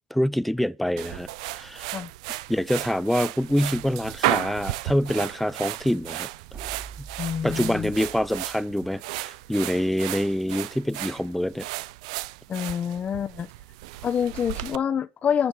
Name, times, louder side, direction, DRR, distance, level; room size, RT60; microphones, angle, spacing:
voice 1, 0.1-1.9 2.5-6.3 7.0-7.1 7.4-11.7, equal, 5° left, 0.7 m, -26 dB
sound 1, 1.0-14.8, right 17 dB, 80° right, 0.6 m, -34 dB
sound 2, 6.5-8.6, right 6 dB, 45° right, 3.7 m, -43 dB
voice 2, 7.2-7.9 12.5-13.5 14.0-15.5, left 8 dB, 40° left, 1.1 m, -27 dB
13.5 x 6.7 x 7.3 m
supercardioid pair, 85°, 4 cm